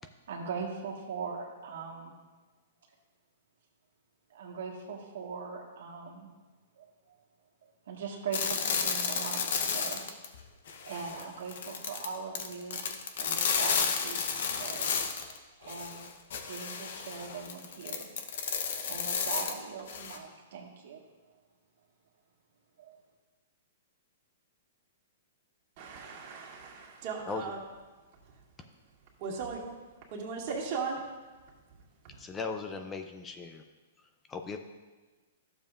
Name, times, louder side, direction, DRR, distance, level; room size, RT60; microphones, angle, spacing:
voice 1, 0.0-2.1 2.8-2.9 4.3-6.3 6.8-6.9 7.9-10.0 10.8-12.8 13.2-15.0 15.6-16.1 16.4-18.1 18.7-21.0 22.8-23.0, right 5 dB, 70° right, 0 dB, 1.6 m, -40 dB
sound 1, 8.3-10.4 10.7-15.4 15.7-20.2, left 6 dB, 65° left, 0.9 m, -32 dB
voice 2, 25.8-27.6 29.2-29.6 30.1-31.0, right 5 dB, 45° right, -2 dB, 2.0 m, -37 dB
voice 3, 32.2-33.6 34.3-34.6, left 4 dB, 15° left, 6 dB, 0.5 m, -37 dB
12.0 x 7.0 x 2.5 m, 1.3 s
hypercardioid pair, 135°, 0 cm